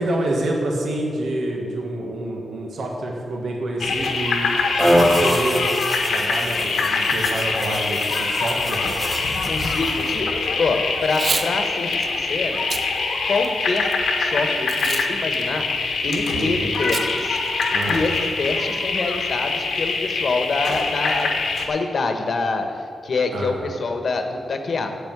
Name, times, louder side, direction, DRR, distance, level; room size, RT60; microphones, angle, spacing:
voice 1, 0.0-4.5 4.8-5.7 6.1-8.8 16.3-16.8 17.7-18.3 23.3-23.7, right 1 dB, 75° right, 0 dB, 1.6 m, -27 dB
sound 1, 3.8-21.7, left 4 dB, 90° left, 1.4 m, -24 dB
sound 2, 4.8-10.2, equal, 15° right, 1.8 m, -25 dB
voice 2, 9.4-12.6 13.3-13.9 14.2-15.6 16.0-17.4 17.9-21.3 21.7-24.9, left 3 dB, 55° left, 6 dB, 1.2 m, -25 dB
Packing tape duct tape / Tearing, 11.0-11.5 11.9-12.1 12.6-12.8 13.4-13.9 14.7-15.1 15.3-15.4 16.9-17.1 17.4-17.5 17.8-18.2, right 4 dB, 45° right, 0.7 m, -27 dB
8.4 x 8.2 x 8.1 m, 2.7 s
wide cardioid pair, 110°, 0 cm